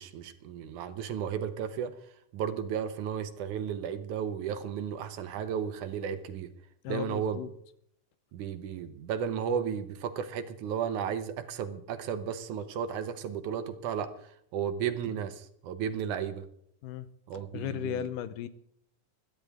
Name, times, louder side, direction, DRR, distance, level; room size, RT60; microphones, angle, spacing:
voice 1, 0.0-2.0 2.3-6.5 6.9-7.4 8.3-16.4 17.3-18.0, right 8 dB, 75° right, 10 dB, 2.4 m, -34 dB
voice 2, 6.8-7.5 16.8-17.1 17.5-18.5, left 10 dB, 85° left, 13 dB, 2.5 m, -35 dB
21.5 x 13.5 x 3.6 m, 0.71 s
omnidirectional pair, 3.7 m